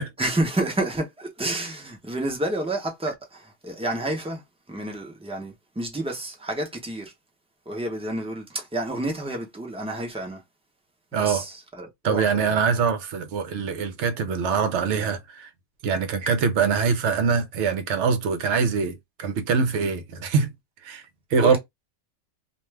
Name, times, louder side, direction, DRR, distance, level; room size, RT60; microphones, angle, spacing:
voice 1, 0.2-4.4 4.7-7.1 7.7-10.4 11.1-12.5 21.4-21.6, right 1 dB, 5° right, 0.4 m, -29 dB
voice 2, 11.1-11.4 12.0-15.5 15.8-20.5 20.8-21.0 21.3-21.6, right 5 dB, 65° right, 0.9 m, -23 dB
2.4 x 2.3 x 3.1 m
omnidirectional pair, 1.4 m